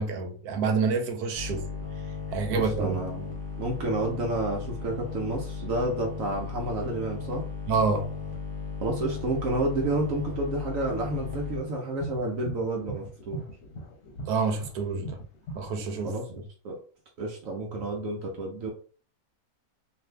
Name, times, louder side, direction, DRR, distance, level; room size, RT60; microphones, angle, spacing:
voice 1, 0.0-1.7 2.3-2.9 7.7-8.1 14.3-15.2 15.6-16.2, right 4 dB, 90° right, 1.1 m, -27 dB
sound 1, 1.3-11.6, left 5 dB, 40° right, 0.8 m, -36 dB
voice 2, 2.5-7.5 8.8-13.4 16.0-16.8 17.2-18.7, right 2 dB, 65° right, 1.0 m, -30 dB
sound 2, 11.5-15.8, right 1 dB, 55° left, 0.9 m, -39 dB
2.6 x 2.5 x 3.2 m
omnidirectional pair, 1.6 m